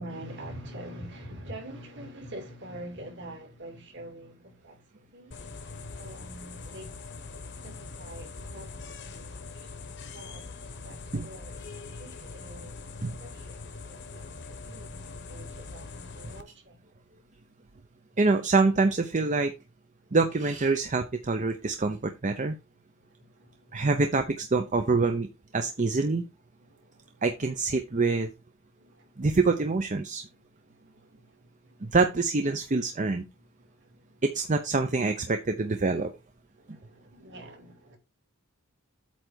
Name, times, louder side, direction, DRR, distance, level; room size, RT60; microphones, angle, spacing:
voice 1, 0.0-7.0 7.4-9.7 10.1-17.0 22.9-23.9 25.9-26.0 26.6-27.3 27.9-28.0 28.8-29.3 30.3-32.0 33.6-34.2 36.6-38.0, right 1 dB, 55° right, 2.7 m, -46 dB
sound 1, 5.3-16.4, left 4 dB, 55° left, 1.1 m, -42 dB
voice 2, 18.2-19.5 20.1-22.5 23.7-25.3 25.5-26.2 27.2-28.3 29.2-30.2 31.8-33.2 34.2-36.1, right 3 dB, 35° right, 0.7 m, -25 dB
8.5 x 3.4 x 6.3 m
head